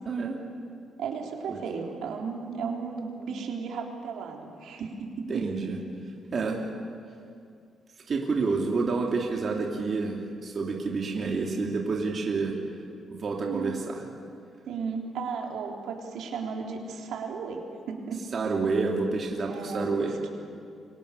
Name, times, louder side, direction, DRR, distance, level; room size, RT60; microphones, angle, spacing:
voice 1, 0.0-0.4 1.5-1.6 5.3-5.8 6.3-6.6 8.1-12.5 13.1-14.0 18.3-20.1, right 4 dB, 40° right, 0 dB, 2.7 m, -28 dB
voice 2, 1.0-5.4 13.4-13.7 14.7-18.2 19.5-20.1, right 5 dB, 80° right, 1 dB, 3.9 m, -34 dB
29.0 x 24.5 x 6.9 m, 2.4 s
cardioid pair, 130°, 0 cm